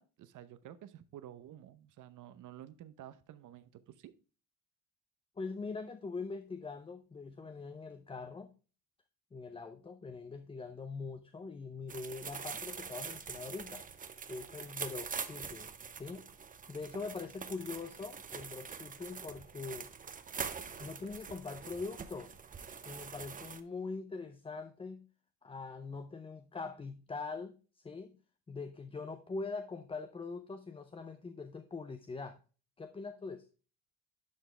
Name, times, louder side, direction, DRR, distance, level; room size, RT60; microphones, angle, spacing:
voice 1, 0.0-4.1, right 11 dB, 60° right, 13 dB, 0.8 m, -51 dB
voice 2, 5.4-8.5 9.3-13.8 14.3-15.7 16.0-16.3 16.7-19.9 20.8-22.3 22.8-25.0 25.4-28.1 28.5-32.4 32.8-33.5, left 4 dB, 15° left, 7 dB, 0.5 m, -43 dB
sound 1, 11.9-23.6, right 6 dB, 25° right, 0.6 m, -44 dB
11.5 x 4.0 x 3.3 m, 0.36 s
cardioid pair, 105°, 35 cm